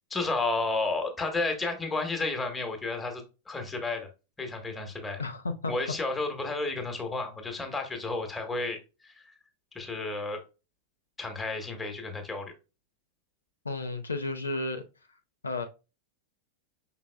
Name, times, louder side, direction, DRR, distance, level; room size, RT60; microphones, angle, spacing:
voice 1, 0.1-4.1 4.4-5.2 5.7-9.3 9.7-10.4 11.2-12.5, left 3 dB, 10° left, 1.2 m, -32 dB
voice 2, 5.2-5.7 13.6-14.8 15.4-15.6, left 2 dB, 75° left, 0.6 m, -32 dB
5.7 x 4.0 x 2.2 m
figure-of-eight pair, 90°, 0 cm